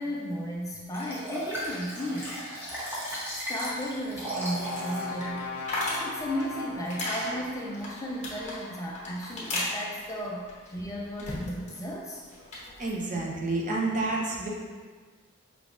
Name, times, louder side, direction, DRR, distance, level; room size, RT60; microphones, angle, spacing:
voice 1, 0.0-2.4 3.3-5.6 6.0-12.2, equal, 15° left, -3 dB, 0.4 m, -34 dB
Liquid, 0.9-5.1 5.6-5.7, right 1 dB, 10° right, 0.9 m, -35 dB
sound 1, 3.3-11.8 12.1-12.9, left 1 dB, 35° left, 1.0 m, -37 dB
Brass instrument, 3.7-7.9, left 3 dB, 80° left, 0.5 m, -40 dB
voice 2, 12.8-14.5, right 2 dB, 35° right, -3 dB, 0.7 m, -29 dB
4.8 x 3.4 x 2.5 m, 1.5 s
head